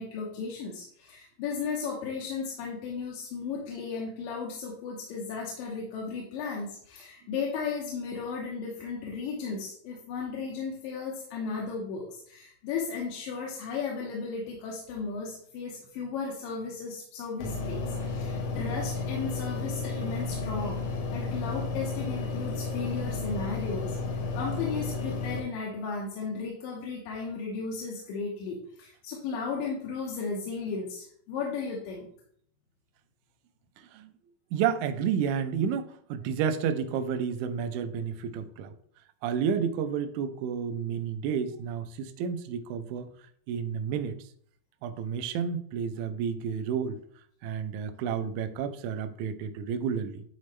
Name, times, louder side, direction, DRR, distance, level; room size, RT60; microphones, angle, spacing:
voice 1, 0.0-32.1, left 5 dB, 85° left, -3 dB, 2.7 m, -35 dB
sound 1, 17.4-25.4, left 3 dB, 60° left, 1.7 m, -32 dB
voice 2, 34.5-38.7 39.2-43.1 43.5-44.2 44.8-47.0 47.4-50.3, right 7 dB, 80° right, 9 dB, 1.8 m, -31 dB
10.5 x 4.1 x 3.2 m, 0.63 s
omnidirectional pair, 3.9 m